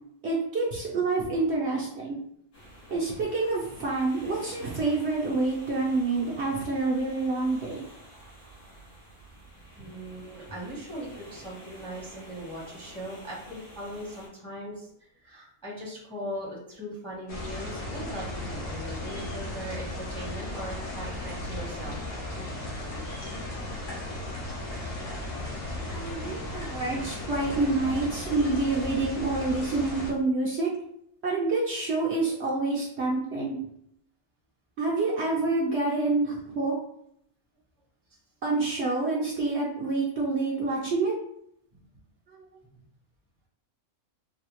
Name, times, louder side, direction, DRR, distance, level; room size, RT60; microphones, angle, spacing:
voice 1, 0.2-2.2 2.9-7.8 25.9-30.7 31.2-33.6 34.8-36.7 38.4-41.1 42.3-42.4, right 3 dB, 55° right, -4 dB, 0.9 m, -27 dB
sound 1, 2.5-14.3, equal, 75° left, 1.8 m, -49 dB
voice 2, 9.8-14.9 15.2-22.0 25.1-25.5, equal, 5° left, -5 dB, 0.8 m, -39 dB
sound 2, 17.3-30.1, left 1 dB, 60° left, 1.2 m, -36 dB
4.1 x 2.3 x 3.0 m, 0.71 s
omnidirectional pair, 1.5 m